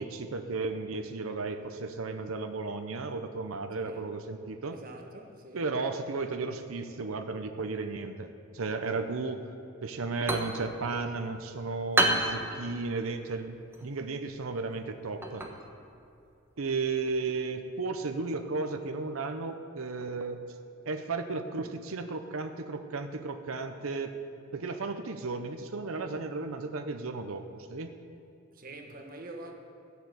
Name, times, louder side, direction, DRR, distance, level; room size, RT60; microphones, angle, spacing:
voice 1, 0.0-4.8 5.5-9.4 9.8-15.4 16.6-20.4 20.9-24.1 24.5-27.9, right 3 dB, 90° right, 0.8 m, -34 dB
voice 2, 3.8-4.1 4.7-5.7 28.5-29.5, right 2 dB, 45° right, 1.3 m, -45 dB
sound 1, 9.9-17.4, right 1 dB, 10° right, 1.1 m, -34 dB
13.5 x 6.9 x 7.9 m
head